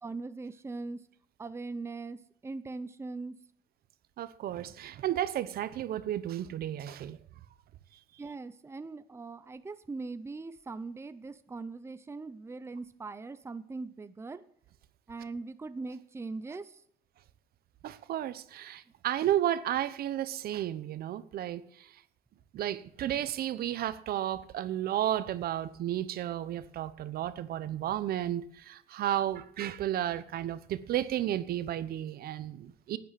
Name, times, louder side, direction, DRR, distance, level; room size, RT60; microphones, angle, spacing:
voice 1, 0.0-1.0 1.4-3.4 8.2-14.4 15.1-16.8, right 3 dB, 15° right, 0.7 m, -40 dB
voice 2, 4.2-7.2 17.8-21.6 22.5-33.0, right 12 dB, 65° right, 1.0 m, -33 dB
11.0 x 9.4 x 7.6 m
cardioid pair, 110°, 17 cm